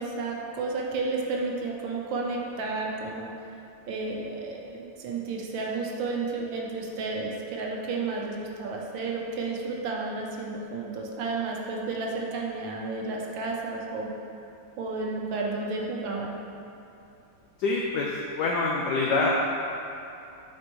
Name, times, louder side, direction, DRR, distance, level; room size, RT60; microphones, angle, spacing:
voice 1, 0.0-3.5 3.9-14.1 14.8-16.4, right 3 dB, 70° right, -1 dB, 1.4 m, -32 dB
voice 2, 17.6-19.3, left 3 dB, 80° left, -2 dB, 0.9 m, -26 dB
8.5 x 4.2 x 3.1 m, 2.7 s
omnidirectional pair, 2.4 m